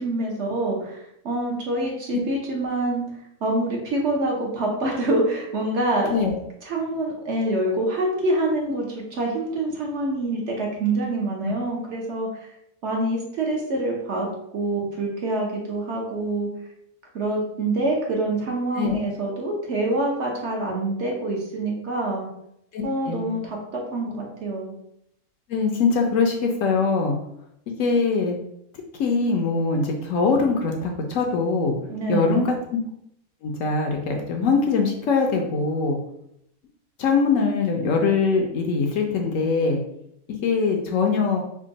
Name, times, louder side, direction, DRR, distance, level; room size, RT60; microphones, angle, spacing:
voice 1, 0.0-3.0 3.4-6.1 6.6-12.5 12.8-14.3 14.5-16.5 17.1-22.3 22.8-24.7 31.9-32.5, right 2 dB, 60° right, -1 dB, 0.9 m, -26 dB
voice 2, 22.7-23.3 25.5-27.2 27.8-28.4 29.0-31.8 32.1-32.8 33.4-36.0 37.0-39.8 40.4-41.4, left 4 dB, 70° left, 2 dB, 0.9 m, -22 dB
3.5 x 2.2 x 3.9 m, 0.76 s
omnidirectional pair, 1.6 m